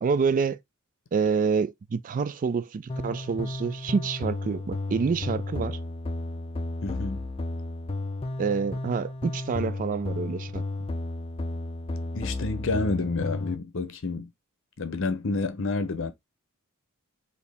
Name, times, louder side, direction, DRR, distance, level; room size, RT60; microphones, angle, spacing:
voice 1, 0.0-0.6 1.1-5.8 8.4-10.6, right 5 dB, 35° right, 0.3 m, -27 dB
sound 1, 2.9-13.5, left 2 dB, 25° left, 0.5 m, -33 dB
voice 2, 6.8-7.3 12.1-14.3 14.8-16.1, left 3 dB, 60° left, 0.7 m, -29 dB
4.3 x 2.7 x 3.4 m
head